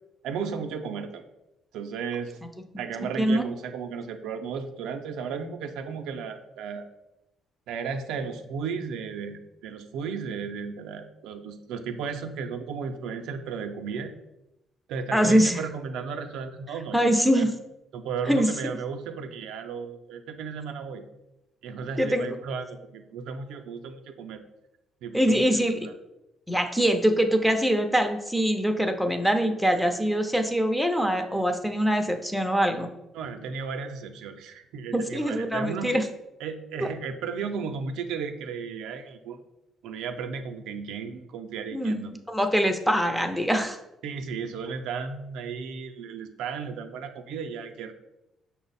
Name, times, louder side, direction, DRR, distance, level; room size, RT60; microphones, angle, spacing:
voice 1, 0.2-1.2 1.7-2.4 2.8-6.9 7.7-14.1 14.9-17.5 17.9-21.0 21.6-24.4 25.0-25.4 33.1-36.0 36.4-39.4 39.8-42.1 44.0-47.9, right 6 dB, 90° right, 6 dB, 0.4 m, -34 dB
voice 2, 15.1-15.6 16.9-17.5 18.3-18.5 22.0-22.4 25.1-25.8 26.5-32.9 34.9-36.0 36.8-36.9 41.7-42.0 42.3-43.8, equal, ahead, 5 dB, 0.4 m, -23 dB
5.7 x 2.0 x 4.0 m, 0.91 s
cardioid pair, 110°, 0 cm